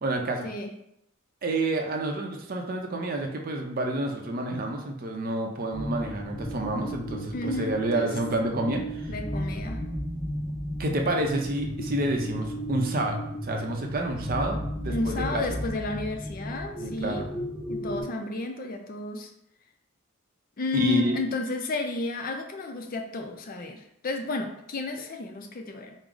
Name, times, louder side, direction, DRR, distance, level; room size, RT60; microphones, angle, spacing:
voice 1, 0.0-0.5 1.4-9.1 10.8-15.4 16.8-17.3 20.7-21.2, right 2 dB, 45° right, 3 dB, 0.5 m, -29 dB
sound 1, 5.7-18.0, equal, 25° left, 1.5 m, -34 dB
voice 2, 7.3-8.1 9.1-9.8 14.9-17.2 17.7-19.3 20.6-26.0, left 3 dB, 45° left, 4 dB, 0.5 m, -32 dB
4.6 x 2.0 x 3.8 m, 0.75 s
head